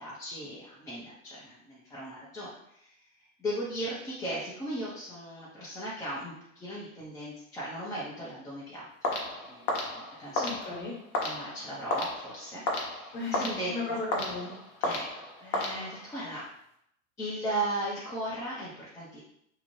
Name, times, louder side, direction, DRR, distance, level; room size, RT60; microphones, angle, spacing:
voice 1, 0.0-2.5 3.4-10.4 11.2-14.0 14.8-16.4 17.2-19.2, right 1 dB, 10° left, -8 dB, 0.4 m, -37 dB
sound 1, 9.0-16.3, left 2 dB, 50° left, 0.8 m, -34 dB
voice 2, 10.4-10.9 13.1-14.6, left 3 dB, 25° left, -3 dB, 1.0 m, -36 dB
2.7 x 2.1 x 3.0 m, 0.74 s
hypercardioid pair, 95°, 40 cm